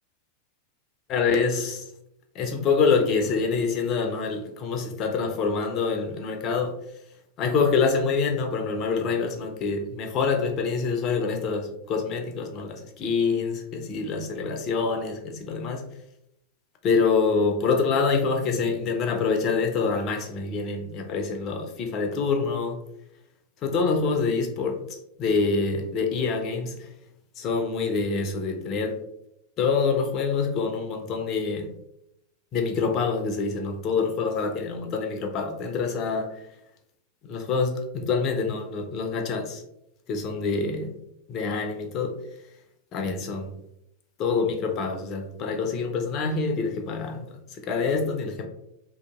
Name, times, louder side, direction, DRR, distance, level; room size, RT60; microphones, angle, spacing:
voice 1, 1.1-1.9 2.3-6.8 7.4-15.8 16.8-22.8 23.6-26.9 27.4-29.0 29.6-31.7 32.5-36.4 37.2-39.6 40.1-40.9 41.3-42.2 42.9-43.5 44.2-48.5, left 4 dB, 35° left, 4 dB, 0.4 m, -26 dB
2.7 x 2.4 x 2.3 m, 0.79 s
figure-of-eight pair, 90°, 0 cm